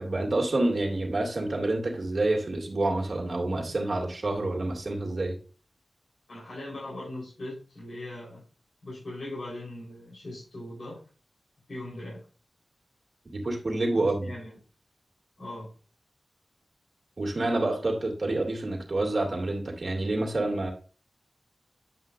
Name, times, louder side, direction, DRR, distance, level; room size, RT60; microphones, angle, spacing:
voice 1, 0.0-5.3 13.3-14.3 17.2-20.7, right 2 dB, 55° right, 0 dB, 2.4 m, -28 dB
voice 2, 6.3-8.5 8.8-11.0 11.7-12.2 14.0-14.6 15.4-15.7, left 1 dB, 75° left, -7 dB, 4.0 m, -40 dB
9.5 x 5.7 x 2.5 m, 0.36 s
cardioid pair, 55°, 0 cm